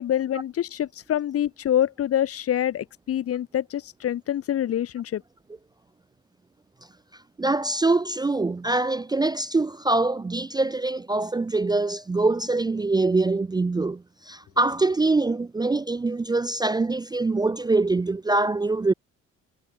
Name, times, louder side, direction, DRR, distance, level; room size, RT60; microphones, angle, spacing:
voice 1, 0.0-5.2, left 11 dB, 50° left, 0.7 m, -26 dB
voice 2, 7.4-18.9, right 3 dB, 15° right, 0.4 m, -24 dB
cardioid pair, 90°, 30 cm